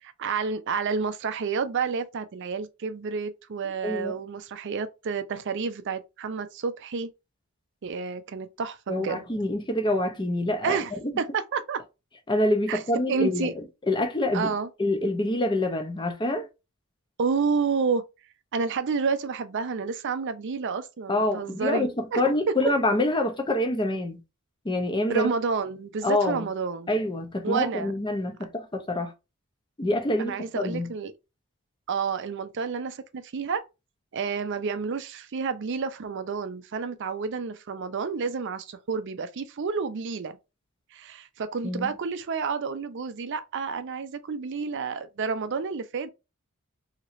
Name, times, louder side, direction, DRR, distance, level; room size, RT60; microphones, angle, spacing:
voice 1, 0.0-7.1 7.8-9.2 10.6-10.9 11.2-11.8 12.7-12.8 13.1-13.5 14.3-14.7 17.2-18.0 18.5-22.2 22.5-22.6 25.1-26.9 27.4-27.9 30.2-31.1 31.9-33.6 34.1-40.4 40.9-46.1, right 5 dB, 55° right, 0.4 m, -30 dB
voice 2, 8.9-11.1 12.3-14.5 14.8-16.5 21.1-24.2 24.6-25.3 26.0-26.5 26.9-29.1 29.8-30.9 41.6-41.9, left 1 dB, 20° left, 0.6 m, -26 dB
3.1 x 2.8 x 2.5 m
head